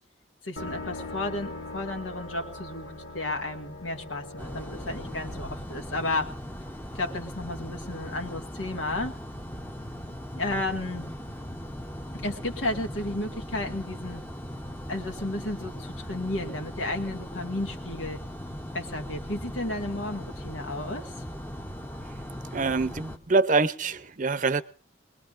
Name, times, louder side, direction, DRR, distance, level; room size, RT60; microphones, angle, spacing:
voice 1, 0.4-6.3 6.9-9.1 10.4-11.1 12.1-14.2 14.9-18.2 18.7-21.1, left 2 dB, 85° left, 2.0 m, -33 dB
sound 1, 0.6-6.4, left 2 dB, 70° left, 2.0 m, -41 dB
sound 2, 4.4-23.2, equal, 10° left, 0.8 m, -39 dB
voice 2, 22.5-24.6, right 3 dB, 40° right, 0.7 m, -25 dB
22.0 x 21.0 x 2.6 m
head